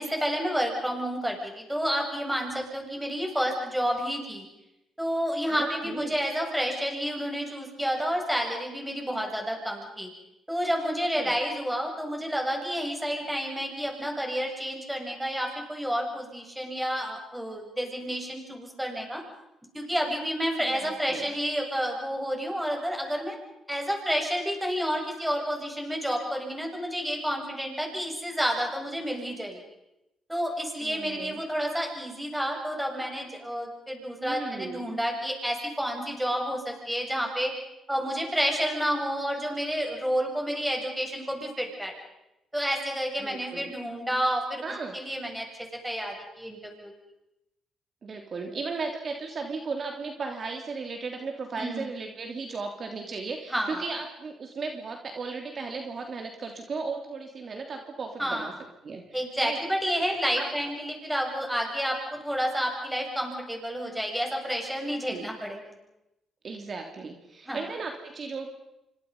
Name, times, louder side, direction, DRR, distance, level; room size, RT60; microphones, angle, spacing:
voice 1, 0.0-4.5 5.0-10.1 10.5-19.2 19.7-23.4 23.7-29.6 30.3-37.5 37.9-41.9 42.5-44.6 44.9-46.9 51.6-51.9 53.5-53.8 58.2-58.5 59.1-65.7 67.5-67.6, equal, 5° right, 2 dB, 7.8 m, -30 dB
voice 2, 5.5-6.2 11.2-11.4 20.6-21.3 30.8-31.4 34.2-34.9 43.2-43.7 44.6-44.9 48.0-58.5 58.8-59.6 59.9-60.7 65.1-65.3 66.4-68.5, right 4 dB, 45° right, 3 dB, 3.1 m, -36 dB
27.5 x 25.5 x 5.5 m, 0.88 s
cardioid pair, 90°, 0 cm